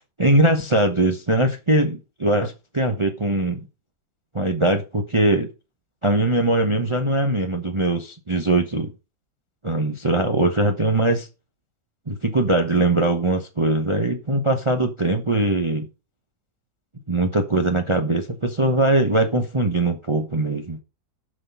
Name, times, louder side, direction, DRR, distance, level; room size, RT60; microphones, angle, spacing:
voice 1, 0.2-3.6 4.3-5.5 6.0-8.9 9.6-11.3 12.1-15.9 17.1-20.8, right 2 dB, 25° right, 0.8 m, -21 dB
9.8 x 5.7 x 5.4 m
omnidirectional pair, 1.7 m